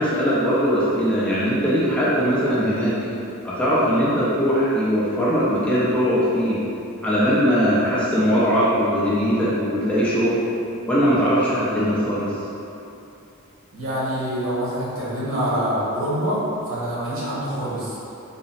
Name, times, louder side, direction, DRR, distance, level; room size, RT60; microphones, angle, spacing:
voice 1, 0.0-3.0 3.4-6.6 7.0-10.4 10.8-12.3, equal, 5° left, -10 dB, 0.5 m, -20 dB
voice 2, 13.7-16.4 16.7-18.0, equal, 60° right, -9 dB, 1.2 m, -25 dB
3.8 x 2.0 x 4.0 m, 2.8 s
head